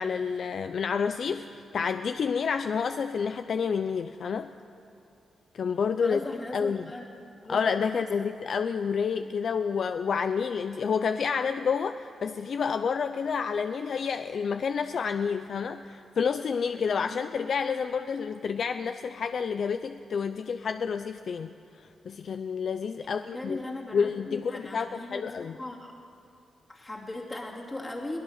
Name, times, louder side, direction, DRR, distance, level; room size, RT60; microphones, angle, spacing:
voice 1, 0.0-4.5 5.5-6.9 7.5-23.6 23.9-25.6, left 6 dB, 50° left, 9 dB, 0.5 m, -29 dB
voice 2, 6.0-7.0 7.4-7.7 8.1-8.3 16.9-17.2 23.0-25.9 26.7-28.2, left 2 dB, 15° left, -1 dB, 2.5 m, -38 dB
23.0 x 18.5 x 6.5 m, 2.6 s
wide cardioid pair, 180°, 0 cm